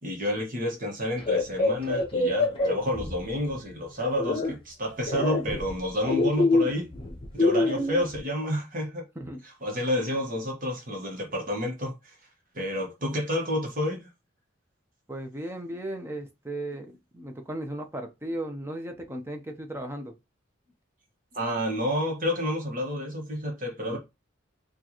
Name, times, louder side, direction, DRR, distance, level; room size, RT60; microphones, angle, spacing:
voice 1, 0.0-6.9 7.3-9.0 9.6-12.1 12.5-14.0 21.3-24.0, left 1 dB, 45° right, 1.2 m, -29 dB
sound 1, 1.2-3.5 4.0-4.5 5.1-8.2, left 2 dB, 30° left, 0.9 m, -25 dB
voice 2, 15.1-20.1 23.9-24.0, right 1 dB, 15° right, 0.7 m, -36 dB
4.4 x 2.4 x 2.9 m
head